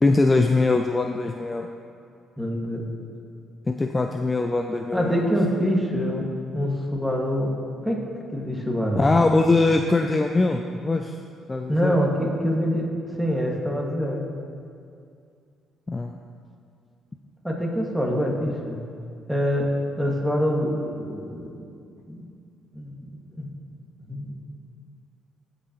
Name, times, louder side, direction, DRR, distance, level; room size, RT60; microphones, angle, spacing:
voice 1, 0.0-1.7 3.7-5.2 8.9-11.1 11.5-12.0 15.9-16.1, left 3 dB, 25° left, 4 dB, 0.4 m, -22 dB
voice 2, 2.4-2.9 4.9-6.3 6.5-7.5 7.8-8.0 8.3-9.1 11.7-12.9 13.2-14.3 17.4-18.8 19.3-19.7 20.0-21.6 22.1-22.3 22.7-22.9 23.3-23.5 24.0-24.3, equal, 5° right, -2 dB, 2.1 m, -25 dB
16.0 x 6.7 x 3.1 m, 2.3 s
supercardioid pair, 70°, 0 cm